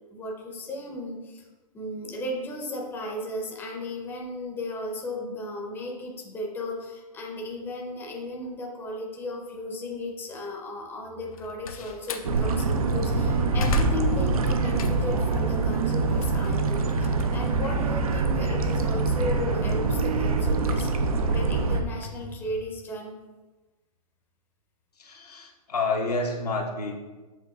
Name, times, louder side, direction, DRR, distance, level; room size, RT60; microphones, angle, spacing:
voice 1, 0.1-1.5 1.7-20.9 21.3-23.1, left 1 dB, 10° left, 0 dB, 0.6 m, -35 dB
Slam, 11.2-12.3 12.9-15.3 15.7-18.1, left 2 dB, 65° left, 0.6 m, -32 dB
sound 1, 12.2-21.8, right 4 dB, 70° right, 0.5 m, -25 dB
voice 2, 25.0-26.9, left 3 dB, 85° left, -1 dB, 1.0 m, -29 dB
7.6 x 2.9 x 2.3 m, 1.2 s
figure-of-eight pair, 120°, 19 cm